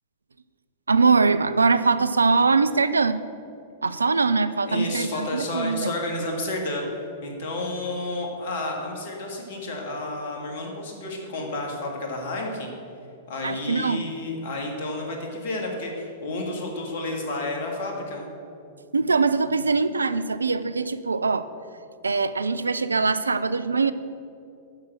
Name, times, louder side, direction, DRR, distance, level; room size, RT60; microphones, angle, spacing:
voice 1, 0.9-3.2 3.8-5.9 13.4-14.1 18.9-21.5 22.0-23.9, right 4 dB, 75° right, 13 dB, 0.3 m, -22 dB
voice 2, 4.6-6.9 7.2-12.7 13.3-18.3, left 2 dB, 50° left, 0 dB, 1.8 m, -31 dB
7.5 x 6.0 x 7.5 m, 2.6 s
figure-of-eight pair, 100°, 0 cm